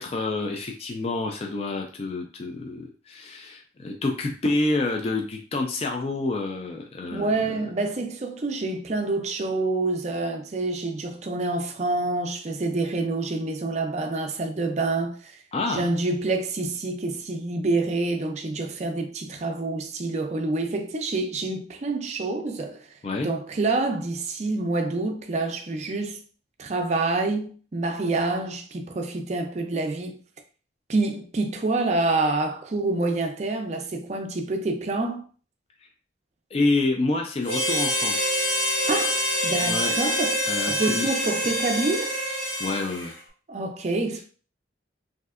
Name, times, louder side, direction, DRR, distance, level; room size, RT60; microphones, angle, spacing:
voice 1, 0.0-7.3 15.5-15.9 23.0-23.3 35.8-35.9 36.5-38.4 39.6-40.0 40.5-41.1 42.6-43.2 44.2-44.3, left 2 dB, 35° left, 0.3 m, -28 dB
voice 2, 7.1-15.4 15.7-22.9 23.2-26.2 26.6-30.2 30.9-35.2 38.9-40.4 40.7-42.2 43.5-44.2, right 2 dB, 40° right, 0.4 m, -27 dB
Harmonica, 37.4-43.1, equal, 80° left, 1.4 m, -26 dB
3.2 x 2.6 x 2.4 m
head